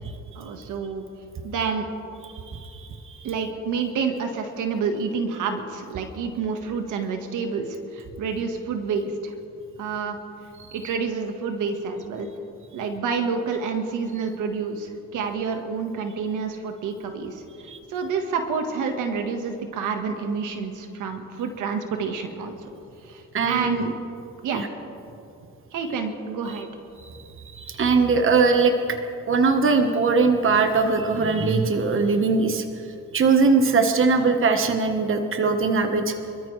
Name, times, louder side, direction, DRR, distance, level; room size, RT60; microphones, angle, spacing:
voice 1, 0.3-1.0 1.4-1.9 3.2-9.3 9.8-10.2 10.7-12.3 12.7-17.4 17.9-22.7 23.0-23.9 24.4-24.6 25.7-26.7, right 5 dB, 85° right, 5 dB, 1.6 m, -28 dB
voice 2, 2.5-3.2 17.7-17.8 23.3-23.9 24.5-24.7 27.4-29.0 29.3-32.6 33.1-36.1, right 4 dB, 45° right, 6 dB, 1.3 m, -21 dB
26.0 x 14.0 x 3.3 m, 2.6 s
cardioid pair, 90°, 30 cm